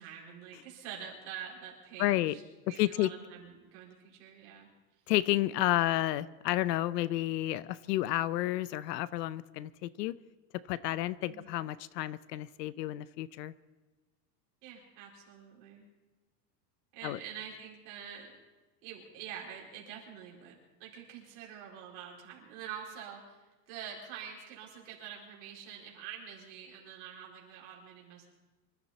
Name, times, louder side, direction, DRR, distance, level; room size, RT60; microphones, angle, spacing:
voice 1, 0.0-2.4 2.7-4.7 11.2-11.5 14.6-15.9 16.9-18.3 18.8-23.4 23.7-28.2, right 8 dB, 45° right, -2 dB, 4.7 m, -46 dB
voice 2, 2.0-2.4 2.8-3.1 5.1-10.2 10.7-13.5 17.0-17.2, left 15 dB, 90° left, 18 dB, 0.8 m, -31 dB
25.5 x 13.5 x 4.2 m, 1.2 s
supercardioid pair, 175°, 48 cm